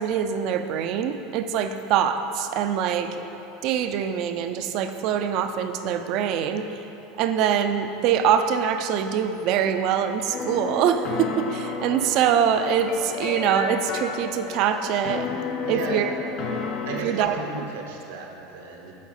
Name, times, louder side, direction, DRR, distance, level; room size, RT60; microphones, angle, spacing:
voice 1, 0.0-3.2 3.6-6.8 7.2-15.3 15.7-16.1 17.0-17.3, right 8 dB, 55° right, 8 dB, 0.4 m, -24 dB
sound 1, 10.3-17.0, left 5 dB, 55° left, 0.7 m, -32 dB
voice 2, 15.6-16.3 16.9-19.0, right 3 dB, 80° right, 0 dB, 1.0 m, -34 dB
8.3 x 4.2 x 4.1 m, 3.0 s
hypercardioid pair, 95°, 0 cm